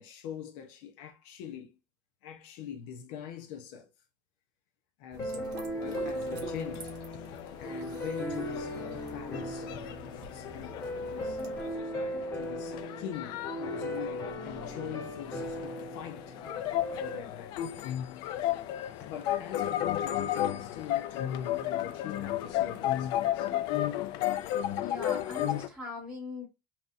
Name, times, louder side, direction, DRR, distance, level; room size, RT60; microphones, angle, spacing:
voice 1, 0.0-1.7 2.2-3.9 5.0-6.9 7.6-11.6 12.3-16.4 17.0-17.7 19.0-23.5, left 9 dB, 60° left, 0.7 m, -43 dB
sound 1, 5.1-11.7, right 2 dB, 35° right, 1.1 m, -49 dB
sound 2, 5.2-17.2, equal, 25° left, 1.0 m, -38 dB
sound 3, 5.9-25.7, left 12 dB, 45° left, 0.4 m, -34 dB
voice 2, 24.8-26.5, left 2 dB, 10° right, 1.8 m, -40 dB
5.5 x 2.9 x 2.5 m
cardioid pair, 170°, 11 cm